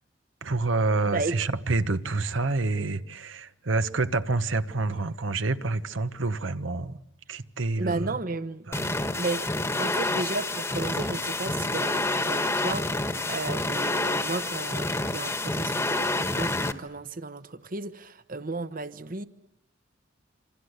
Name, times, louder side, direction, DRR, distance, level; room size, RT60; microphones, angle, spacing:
voice 1, 0.4-7.0 7.3-8.1 8.7-9.0, right 3 dB, 85° right, 1.2 m, -28 dB
voice 2, 7.8-8.7 9.1-9.5 9.8-19.3, right 3 dB, 45° right, 1.1 m, -33 dB
sound 1, 8.7-16.7, left 2 dB, 15° left, 1.3 m, -28 dB
27.5 x 26.5 x 8.1 m
head